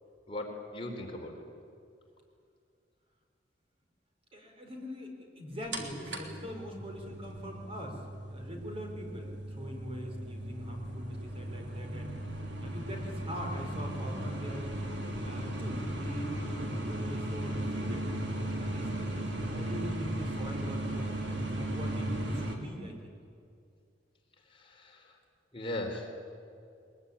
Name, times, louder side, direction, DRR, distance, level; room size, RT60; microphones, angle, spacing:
voice 1, 0.3-1.4 24.5-25.2 25.5-26.1, left 1 dB, 30° left, 1 dB, 3.5 m, -38 dB
voice 2, 4.3-12.2 12.6-14.7 15.2-18.1 18.6-21.1 21.5-23.1, equal, 30° right, 2 dB, 4.2 m, -42 dB
sound 1, 5.7-22.6, right 1 dB, 70° right, 3.3 m, -36 dB
22.0 x 21.5 x 9.8 m, 2.4 s
head